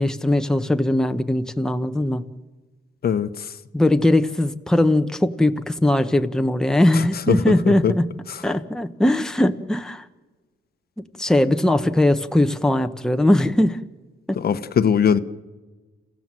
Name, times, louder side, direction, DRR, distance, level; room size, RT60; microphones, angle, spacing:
voice 1, 0.0-2.3 3.7-8.1 8.4-10.0 11.2-13.8 14.3-14.4, left 1 dB, 5° left, 7 dB, 1.0 m, -20 dB
voice 2, 3.0-3.5 6.9-7.9 8.3-8.4 14.3-15.2, left 7 dB, 50° left, 12 dB, 1.1 m, -21 dB
29.0 x 15.5 x 7.6 m, 1.3 s
cardioid pair, 90°, 20 cm